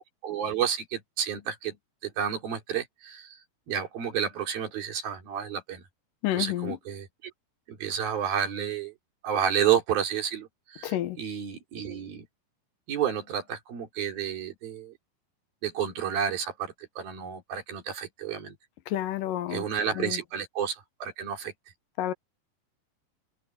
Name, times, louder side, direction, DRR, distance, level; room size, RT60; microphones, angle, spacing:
voice 1, 0.0-1.8 2.0-3.4 3.7-5.8 6.3-7.3 7.7-8.9 9.2-12.3 12.9-14.9 15.6-18.6 19.5-21.5, right 8 dB, 90° right, 5.2 m, -31 dB
voice 2, 6.2-6.8 10.8-11.2 18.9-19.6 20.0-20.2 22.0-22.1, left 13 dB, 75° left, 2.5 m, -29 dB
omnidirectional pair, 4.1 m